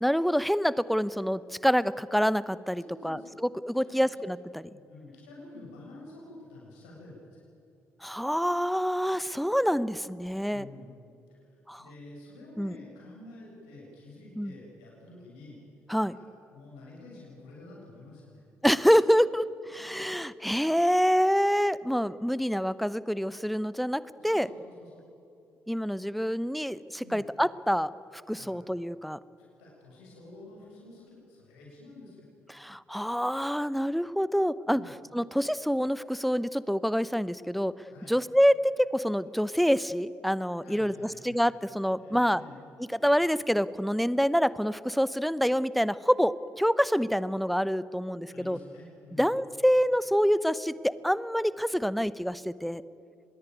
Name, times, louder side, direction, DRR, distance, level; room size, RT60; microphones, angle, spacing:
voice 1, 0.0-4.7 8.0-10.7 11.7-11.8 12.6-12.7 14.4-14.5 15.9-16.2 18.6-24.5 25.7-29.2 32.5-34.8 35.1-37.7 38.1-40.9 41.2-42.4 42.8-48.6 49.2-52.8, equal, ahead, 18 dB, 0.8 m, -26 dB
voice 2, 2.7-3.4 3.7-4.2 4.7-7.4 10.5-10.9 11.3-11.5 11.8-15.6 16.1-18.4 24.2-25.0 27.0-27.2 28.3-28.6 29.6-32.2 34.7-34.9 37.9-38.1 40.6-41.4 42.0-42.6 48.3-49.3, left 2 dB, 70° left, -3 dB, 7.0 m, -49 dB
25.0 x 21.0 x 9.4 m, 2.7 s
figure-of-eight pair, 45°, 7 cm